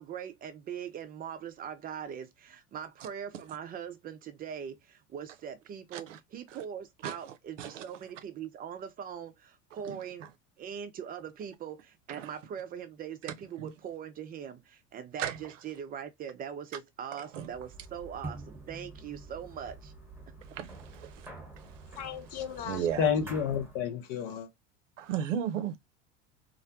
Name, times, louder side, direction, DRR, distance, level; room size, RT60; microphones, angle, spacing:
voice 1, 0.0-10.3 10.6-19.9, right 8 dB, 25° right, 0.4 m, -41 dB
voice 2, 7.0-7.8 9.8-10.0 12.1-12.3 13.6-13.7 15.2-15.4 17.1-17.5 20.5-21.3 21.6-23.1 25.0-25.8, right 9 dB, 85° right, 0.5 m, -36 dB
sound 1, 17.4-23.9, right 2 dB, 5° right, 1.0 m, -47 dB
voice 3, 22.0-24.5, left 8 dB, 55° left, 0.8 m, -31 dB
2.5 x 2.1 x 2.6 m
hypercardioid pair, 85°, 36 cm